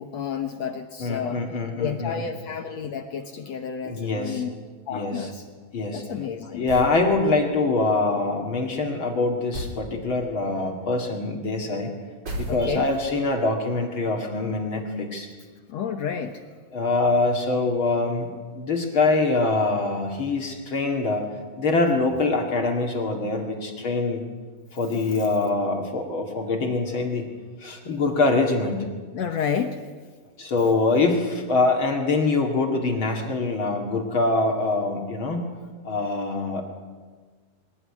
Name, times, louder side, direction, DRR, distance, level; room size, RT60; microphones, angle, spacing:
voice 1, 0.0-1.4 1.8-4.5 4.9-5.4 5.9-6.7 12.5-12.9 15.7-16.4 29.1-29.8, left 7 dB, 65° left, 7 dB, 1.8 m, -30 dB
voice 2, 1.0-2.3 3.8-4.5 4.9-5.3 5.7-6.1 6.4-11.9 12.4-15.3 16.7-24.2 24.7-27.3 27.6-28.9 30.4-35.5 35.8-36.6, left 3 dB, 40° left, 2 dB, 2.5 m, -24 dB
sound 1, 6.7-7.0 9.5-9.9 12.3-13.0, right 1 dB, 30° right, 3.4 m, -33 dB
22.5 x 18.5 x 9.8 m, 1.5 s
omnidirectional pair, 4.2 m